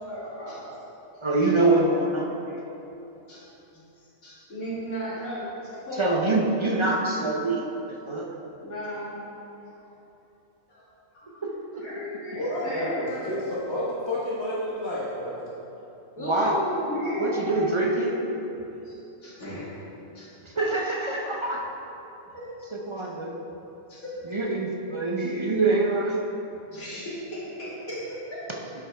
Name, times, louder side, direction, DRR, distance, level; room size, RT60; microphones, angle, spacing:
voice 1, 0.1-0.7 3.3-3.5 4.0-6.2 6.6-6.8 8.6-9.3 9.7-9.8 10.7-10.8 11.1-11.4 11.8-13.3 16.1-18.4 18.8-18.9 19.2-19.7 20.1-20.5 22.3-22.7 23.0-23.1 23.9-24.1 25.2-25.3 26.7-28.0 28.3-28.4, equal, 80° left, -9 dB, 2.3 m, -34 dB
voice 2, 1.2-2.6 6.0-8.4 11.7-11.8 16.2-16.6 17.2-18.1 20.5-21.7 22.7-23.4 24.3-26.2, right 2 dB, 40° right, -2 dB, 0.4 m, -25 dB
voice 3, 12.3-15.6, left 1 dB, 20° left, -7 dB, 1.0 m, -30 dB
12.0 x 5.0 x 3.4 m, 3.0 s
omnidirectional pair, 1.4 m